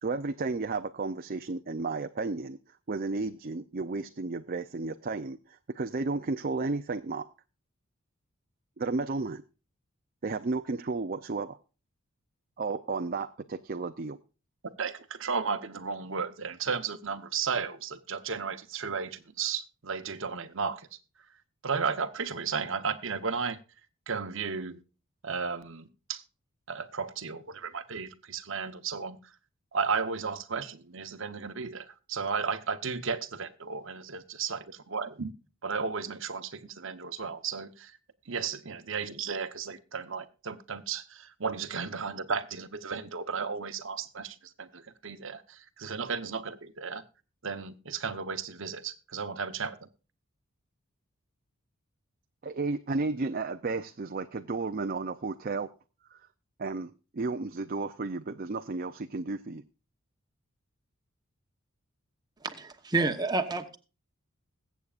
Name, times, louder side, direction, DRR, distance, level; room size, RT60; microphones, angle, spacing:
voice 1, 0.0-2.6 2.9-7.3 8.8-9.4 10.2-11.6 12.6-14.2 52.4-55.7 56.1-56.2 56.6-59.6, right 3 dB, 45° right, 0.5 m, -33 dB
voice 2, 14.8-21.0 21.6-23.6 24.1-24.8 25.2-26.2 26.7-29.3 29.7-35.3 35.6-38.0 38.3-47.0 47.4-49.8, right 5 dB, 60° right, 1.0 m, -34 dB
voice 3, 62.4-63.8, right 3 dB, 20° right, 1.0 m, -29 dB
21.5 x 8.2 x 2.5 m
head